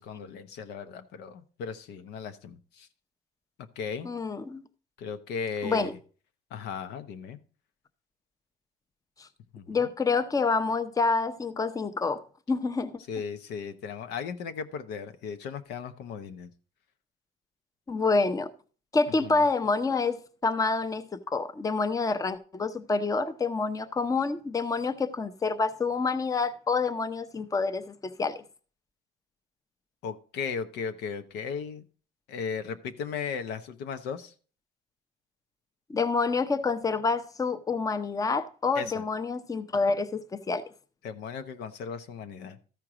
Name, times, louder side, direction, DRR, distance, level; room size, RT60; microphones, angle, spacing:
voice 1, 0.0-2.9 3.8-4.1 5.0-6.0 6.5-7.4 9.5-9.8 13.1-16.5 19.2-19.4 30.0-31.8 32.3-34.3 38.8-39.0 41.0-42.6, left 6 dB, 80° left, 0.9 m, -36 dB
voice 2, 4.0-4.6 5.6-5.9 9.2-9.3 9.7-12.9 17.9-18.5 18.9-28.4 35.9-40.6, left 4 dB, 20° left, 0.7 m, -28 dB
13.5 x 4.6 x 4.9 m
cardioid pair, 110°, 17 cm